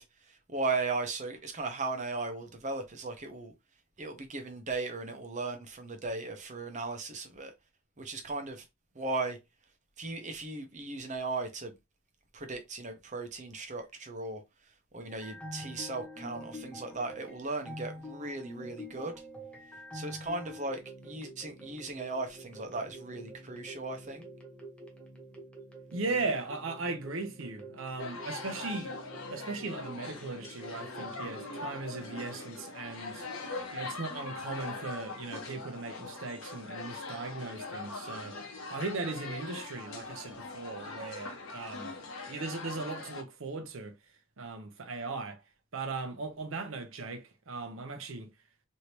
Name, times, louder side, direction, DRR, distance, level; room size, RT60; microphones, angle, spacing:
voice 1, 0.0-3.5 4.0-7.5 8.0-8.7 8.9-9.4 10.0-11.7 12.3-14.4 14.9-19.1 19.9-24.2, right 3 dB, 35° right, 0.7 m, -37 dB
sound 1, 15.1-32.3, equal, 5° left, 0.7 m, -47 dB
voice 2, 25.9-33.3 33.7-38.4 38.7-41.9 42.3-43.9 44.4-45.4 45.7-48.3, right 3 dB, 70° right, 0.7 m, -38 dB
sound 2, 28.0-43.2, left 3 dB, 80° left, 1.0 m, -42 dB
3.2 x 2.8 x 2.9 m
head